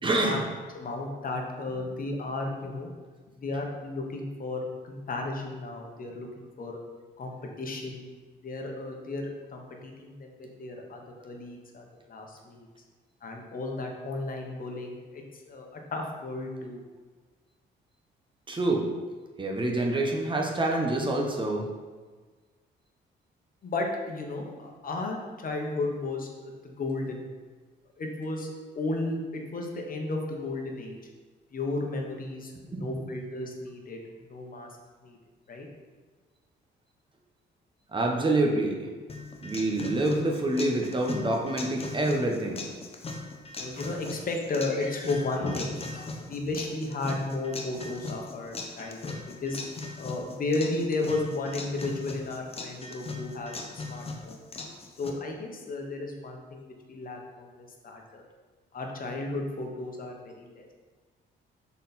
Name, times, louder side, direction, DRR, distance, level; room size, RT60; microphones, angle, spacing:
voice 1, 0.0-0.4 18.5-18.9 19.4-21.6 32.7-33.0 37.9-38.9 39.4-42.6, right 2 dB, 25° right, 1 dB, 1.1 m, -27 dB
voice 2, 0.7-2.9 3.3-6.3 6.6-6.8 7.2-8.1 8.4-12.7 13.2-16.8 23.6-27.2 28.0-31.0 31.5-34.0 34.3-34.7 35.0-35.2 35.5-35.7 43.6-49.6 50.0-54.4 55.0-58.2 58.7-60.7, left 2 dB, 45° left, 1 dB, 1.2 m, -34 dB
sound 1, 39.1-55.1, left 3 dB, 30° left, 0.9 m, -39 dB
6.2 x 4.2 x 4.2 m, 1.4 s
cardioid pair, 90°, 20 cm